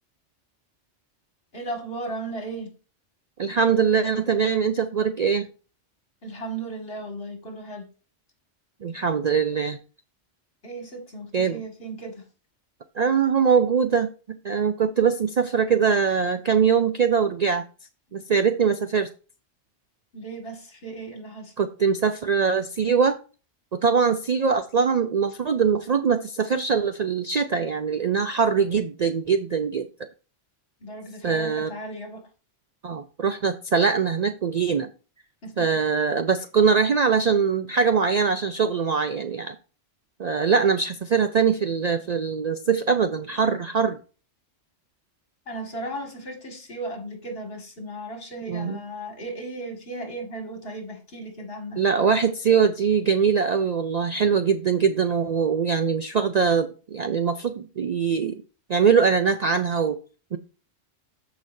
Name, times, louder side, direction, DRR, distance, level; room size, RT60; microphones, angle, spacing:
voice 1, 1.5-2.7 6.2-7.9 10.6-12.3 20.1-21.5 30.8-32.3 35.4-35.8 45.5-51.8, right 2 dB, 55° left, 2 dB, 2.4 m, -36 dB
voice 2, 3.4-5.5 8.8-9.8 11.3-11.6 13.0-17.6 18.1-19.1 21.6-23.2 23.7-29.9 31.2-31.7 32.8-34.9 35.6-39.5 40.2-44.0 48.5-48.8 51.8-58.4 58.7-60.0 60.3-60.4, right 6 dB, 55° right, 9 dB, 0.5 m, -22 dB
14.0 x 5.1 x 2.7 m, 0.36 s
omnidirectional pair, 1.2 m